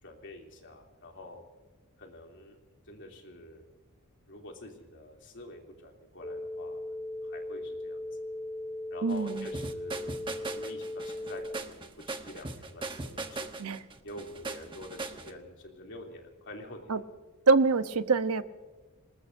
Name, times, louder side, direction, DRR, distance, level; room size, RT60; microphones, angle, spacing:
voice 1, 0.0-1.4 2.0-2.6 2.9-3.6 4.3-6.8 7.2-8.1 8.9-13.5 14.0-17.0, left 1 dB, 55° left, 1 dB, 3.1 m, -47 dB
sound 1, 6.2-11.6, left 1 dB, 25° left, 0.6 m, -38 dB
voice 2, 9.0-9.5 13.6-13.8 16.9-17.0 17.5-18.4, right 4 dB, 85° right, 10 dB, 0.9 m, -25 dB
sound 2, 9.1-15.3, right 3 dB, 20° right, 1.1 m, -39 dB
26.5 x 20.0 x 2.7 m, 1.3 s
head